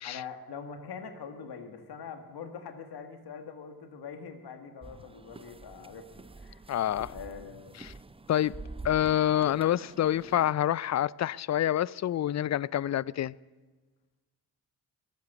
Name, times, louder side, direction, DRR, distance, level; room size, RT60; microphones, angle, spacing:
voice 1, 0.0-6.6 7.1-7.7, left 6 dB, 70° left, 1.7 m, -43 dB
sound 1, 4.8-10.5, right 3 dB, 15° right, 0.6 m, -47 dB
voice 2, 6.7-7.1 7.8-7.9 8.3-8.6 8.8-13.3, left 11 dB, 45° left, 0.4 m, -27 dB
21.5 x 8.3 x 7.0 m
supercardioid pair, 45°, 40 cm